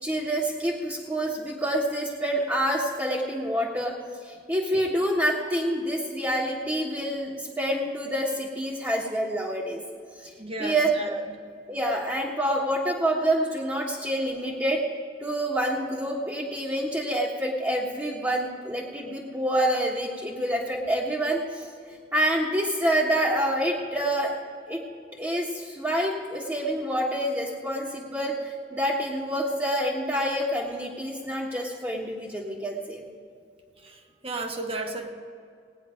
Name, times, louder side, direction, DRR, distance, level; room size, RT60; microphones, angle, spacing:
voice 1, 0.0-3.9 4.2-9.8 10.2-10.3 10.6-11.1 11.7-14.8 15.2-24.3 24.7-24.8 25.2-33.0, right 1 dB, 15° right, -5 dB, 1.4 m, -27 dB
voice 2, 10.4-11.4 33.8-35.1, right 2 dB, 30° right, 4 dB, 1.4 m, -34 dB
18.5 x 9.6 x 5.1 m, 2.3 s
head